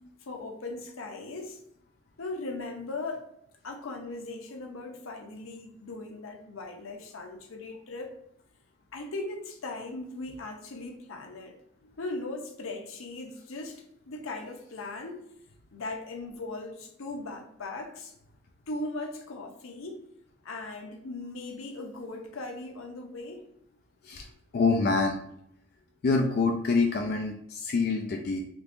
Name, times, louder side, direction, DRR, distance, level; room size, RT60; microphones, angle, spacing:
voice 1, 0.3-1.6 2.2-3.2 3.6-8.1 8.9-11.6 12.0-15.2 15.7-18.1 18.7-20.0 20.4-23.4, left 2 dB, 80° left, 3 dB, 0.7 m, -38 dB
voice 2, 24.5-25.2 26.0-28.4, left 4 dB, 45° left, 2 dB, 0.3 m, -26 dB
3.7 x 2.8 x 2.5 m, 0.74 s
head